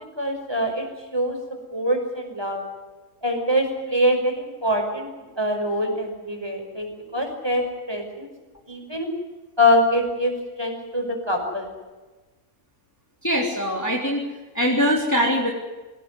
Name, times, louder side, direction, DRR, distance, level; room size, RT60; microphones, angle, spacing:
voice 1, 0.2-1.4 1.7-2.6 3.2-5.1 5.4-8.3 8.7-9.1 9.6-10.3 10.6-11.7, left 1 dB, 15° right, 3 dB, 5.6 m, -24 dB
voice 2, 13.2-15.5, equal, 10° left, -1 dB, 3.4 m, -23 dB
24.5 x 17.5 x 9.7 m, 1.2 s
omnidirectional pair, 1.7 m